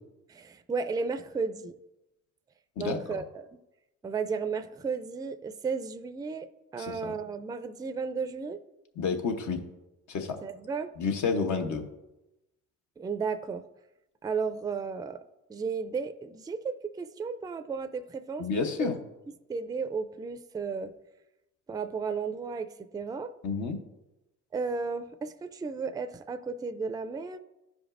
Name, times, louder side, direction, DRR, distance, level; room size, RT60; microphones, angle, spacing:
voice 1, 0.3-1.8 2.8-3.6 4.0-6.5 6.7-8.6 10.4-10.9 13.0-13.7 14.2-15.2 15.5-18.5 18.8-18.9 19.5-20.9 21.7-23.3 24.5-27.4, right 5 dB, 15° right, 10 dB, 0.3 m, -34 dB
voice 2, 2.8-3.2 6.9-7.1 9.0-9.6 10.1-10.4 11.0-11.8 18.4-19.0 23.4-23.8, left 5 dB, 75° left, 5 dB, 1.0 m, -30 dB
12.5 x 5.1 x 2.5 m, 0.97 s
cardioid pair, 90°, 30 cm